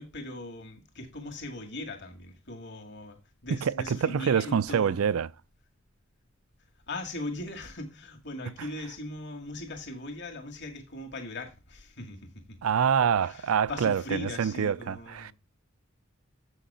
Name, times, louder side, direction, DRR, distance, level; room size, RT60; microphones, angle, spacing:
voice 1, 0.0-5.2 6.9-12.2 12.5-12.6 13.2-15.3, left 1 dB, 60° left, 2.0 m, -39 dB
voice 2, 3.6-5.3 12.6-15.3, right 7 dB, 90° right, 0.4 m, -26 dB
7.3 x 6.5 x 5.6 m
head